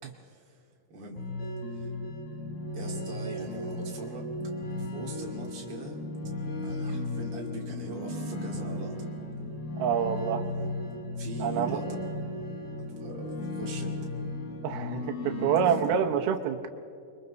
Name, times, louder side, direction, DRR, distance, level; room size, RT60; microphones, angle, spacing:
voice 1, 0.0-1.9 2.7-4.3 4.8-6.0 6.6-9.1 10.4-10.7 11.2-12.0 12.9-14.0 15.6-15.7, right 2 dB, 35° right, -1 dB, 2.8 m, -42 dB
sound 1, 1.2-15.9, left 1 dB, 75° left, 4.7 m, -35 dB
voice 2, 9.8-10.5 11.4-11.8 14.6-16.7, right 8 dB, 85° right, 4 dB, 2.9 m, -27 dB
29.0 x 23.5 x 4.0 m, 2.5 s
omnidirectional pair, 4.3 m